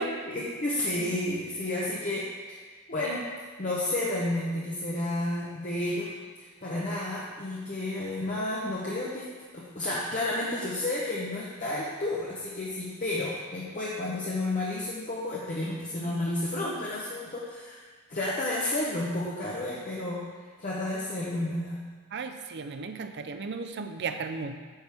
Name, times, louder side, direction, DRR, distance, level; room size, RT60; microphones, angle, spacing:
voice 1, 0.2-3.3 3.6-6.1 6.4-9.3 9.5-20.2 20.6-21.8, left 1 dB, 35° left, -6 dB, 0.9 m, -31 dB
voice 2, 22.1-24.6, right 4 dB, 50° right, 8 dB, 0.5 m, -34 dB
9.0 x 6.3 x 3.5 m, 1.6 s
head